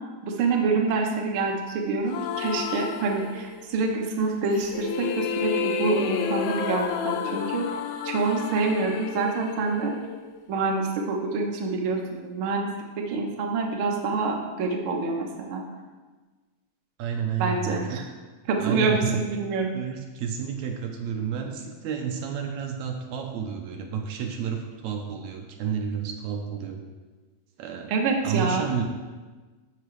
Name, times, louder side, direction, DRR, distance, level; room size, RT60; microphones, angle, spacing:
voice 1, 0.2-7.6 8.0-9.9 10.5-12.7 13.0-15.6 17.4-18.0 18.5-19.7 27.9-28.6, right 4 dB, 60° right, 1 dB, 1.5 m, -26 dB
sound 1, 2.1-3.8 4.5-10.6, left 7 dB, 90° left, 2.0 m, -30 dB
voice 2, 17.0-18.0 18.6-19.2 19.7-26.8 27.6-27.9 28.2-28.8, right 7 dB, 75° right, 3 dB, 2.0 m, -30 dB
13.5 x 5.9 x 3.2 m, 1.3 s
omnidirectional pair, 3.4 m